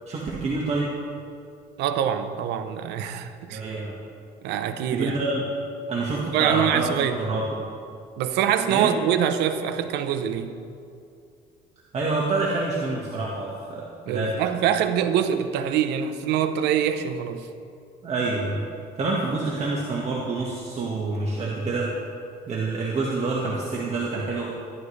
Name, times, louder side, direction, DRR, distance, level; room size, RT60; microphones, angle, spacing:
voice 1, 0.1-0.9 3.5-4.0 4.9-5.4 5.9-7.6 8.7-8.9 11.9-14.3 18.0-18.7 19.0-21.9 22.5-24.4, right 3 dB, 40° right, 1.6 m, -27 dB
voice 2, 1.8-3.6 4.4-5.2 6.3-7.2 8.2-10.5 14.1-17.5, right 9 dB, 85° right, 0.7 m, -24 dB
14.5 x 11.0 x 3.3 m
cardioid pair, 110°, 17 cm